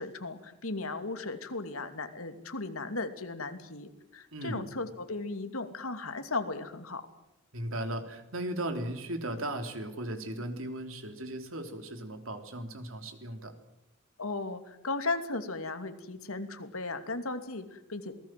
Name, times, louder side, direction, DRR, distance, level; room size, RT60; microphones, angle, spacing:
voice 1, 0.0-7.1 14.2-18.1, left 3 dB, 90° left, 8 dB, 2.7 m, -36 dB
voice 2, 4.3-4.6 7.5-13.5, right 1 dB, 70° right, 7 dB, 3.5 m, -37 dB
27.5 x 19.5 x 7.7 m, 0.87 s
head